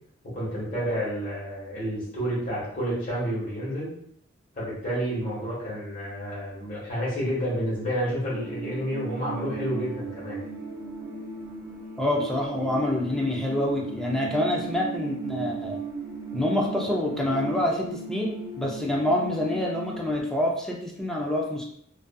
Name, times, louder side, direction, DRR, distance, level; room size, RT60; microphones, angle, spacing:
voice 1, 0.2-3.9 4.5-10.4, equal, 45° left, -7 dB, 1.2 m, -30 dB
sound 1, 8.3-20.2, right 3 dB, 15° right, 0.8 m, -36 dB
voice 2, 12.0-15.8 16.3-21.7, left 1 dB, 5° left, -2 dB, 0.4 m, -27 dB
2.5 x 2.4 x 2.2 m, 0.68 s
head